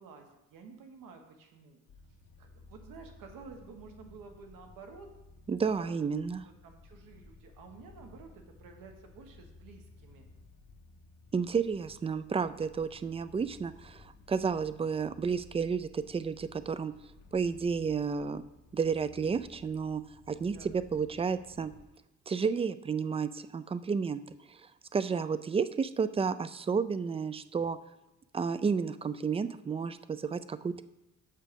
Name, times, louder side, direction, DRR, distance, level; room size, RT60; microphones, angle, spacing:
voice 1, 0.0-1.8 2.4-5.1 5.8-5.9 6.2-6.3 6.6-10.3 20.5-20.7, right 5 dB, 80° right, 4 dB, 1.5 m, -51 dB
sound 1, 1.9-21.9, left 3 dB, 75° left, 1.0 m, -56 dB
voice 2, 5.5-6.4 11.3-16.9 17.3-18.4 18.7-20.0 20.3-21.7 22.3-24.2 24.5-24.6 24.9-27.8 28.3-30.8, right 5 dB, 20° right, 14 dB, 0.3 m, -31 dB
6.8 x 6.0 x 5.2 m, 0.96 s
cardioid pair, 105°, 33 cm